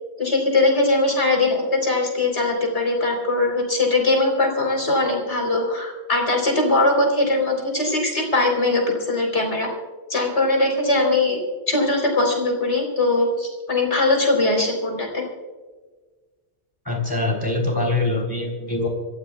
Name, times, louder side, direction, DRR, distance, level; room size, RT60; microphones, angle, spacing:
voice 1, 0.2-9.7 10.1-11.4 11.7-15.2, left 2 dB, 90° left, 1 dB, 4.3 m, -21 dB
voice 2, 16.8-18.9, left 2 dB, 20° left, 1 dB, 3.4 m, -23 dB
27.0 x 15.0 x 2.4 m, 1.4 s
omnidirectional pair, 1.1 m